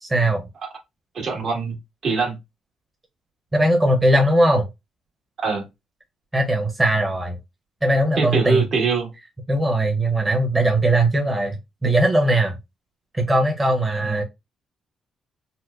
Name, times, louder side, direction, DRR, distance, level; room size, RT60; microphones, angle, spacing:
voice 1, 0.0-0.5 3.5-4.7 6.3-7.4 7.8-8.6 9.5-12.5 13.1-14.2, right 1 dB, 15° right, 0.9 m, -19 dB
voice 2, 1.1-1.8 2.0-2.3 5.4-5.6 8.2-9.1 14.0-14.2, right 4 dB, 60° right, 1.6 m, -23 dB
4.2 x 2.1 x 2.5 m
cardioid pair, 90°, 0 cm